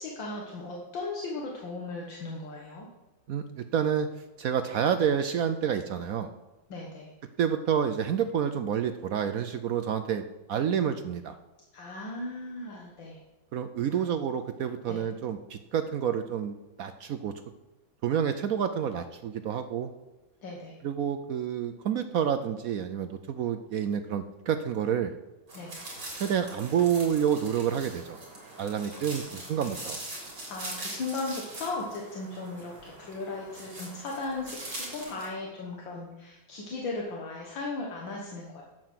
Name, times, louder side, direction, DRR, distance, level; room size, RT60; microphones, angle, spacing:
voice 1, 0.0-2.9 6.7-7.1 11.7-13.2 14.9-15.0 20.4-20.8 25.5-25.8 28.9-29.0 29.3-29.8 30.5-38.6, left 3 dB, 70° left, -1 dB, 2.1 m, -37 dB
voice 2, 3.3-4.1 4.4-6.3 7.4-10.2 10.5-11.4 13.5-17.3 18.0-19.9 20.8-25.1 26.1-28.2 28.6-30.0, right 8 dB, 75° right, 9 dB, 0.8 m, -29 dB
sound 1, 25.5-35.3, right 1 dB, 60° right, 4.4 m, -42 dB
9.4 x 7.6 x 7.6 m, 1.1 s
omnidirectional pair, 2.1 m